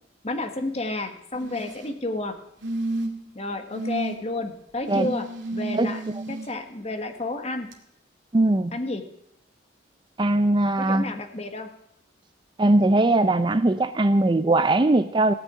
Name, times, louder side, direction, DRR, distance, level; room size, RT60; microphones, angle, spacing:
voice 1, 0.2-2.4 3.3-6.0 6.3-7.7 8.7-9.0 10.7-11.7, left 2 dB, 30° left, 6 dB, 1.4 m, -31 dB
sound 1, 1.3-1.9 2.6-3.3 3.7-4.2 4.9-6.5 7.7-7.8, right 2 dB, 65° right, 2.1 m, -31 dB
voice 2, 8.3-8.8 10.2-11.1 12.6-15.3, right 2 dB, 25° right, 11 dB, 0.4 m, -20 dB
17.5 x 6.3 x 9.6 m, 0.80 s
head